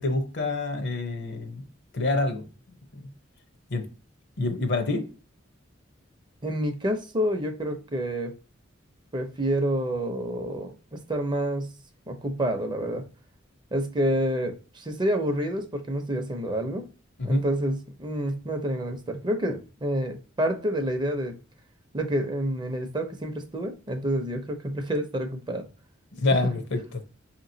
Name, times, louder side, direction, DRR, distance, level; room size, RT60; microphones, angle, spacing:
voice 1, 0.0-1.6 1.9-2.4 3.7-3.8 4.4-5.1 17.2-17.4 26.1-26.8, left 2 dB, 60° left, 0.7 m, -26 dB
voice 2, 6.4-8.4 9.1-11.7 12.1-13.0 13.7-16.8 17.2-21.4 21.9-25.7, equal, 25° right, 0.6 m, -28 dB
4.5 x 2.9 x 2.6 m
head